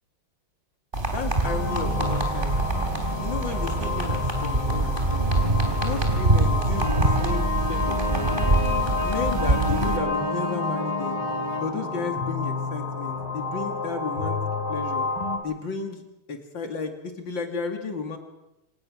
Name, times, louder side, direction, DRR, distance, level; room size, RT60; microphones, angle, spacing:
sound 1, 0.9-10.0, right 2 dB, 25° right, 3.5 m, -24 dB
voice 1, 1.1-2.6 3.2-5.3 5.8-8.4 9.0-11.2 11.6-14.4 14.7-15.0 15.4-16.0 16.3-18.2, left 4 dB, 65° left, 5 dB, 3.1 m, -33 dB
sound 2, 1.4-15.4, left 3 dB, 85° left, 3.6 m, -30 dB
sound 3, 6.7-11.7, left 3 dB, 15° left, 2.8 m, -33 dB
26.5 x 18.0 x 6.3 m, 0.93 s
omnidirectional pair, 2.2 m